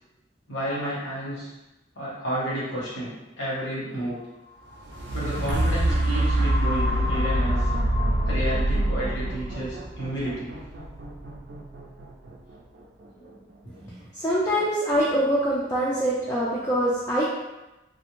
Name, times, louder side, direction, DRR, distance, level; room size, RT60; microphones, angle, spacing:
voice 1, 0.5-1.5 1.9-4.2 5.1-7.7 8.3-10.5 13.1-13.3 13.6-13.9, right 1 dB, 85° left, -7 dB, 1.1 m, -31 dB
sound 1, 4.7-12.8 13.3-13.4, right 1 dB, 65° right, 0.4 m, -25 dB
voice 2, 14.1-17.2, equal, 15° left, -7 dB, 0.3 m, -24 dB
2.5 x 2.1 x 3.0 m, 1.0 s
head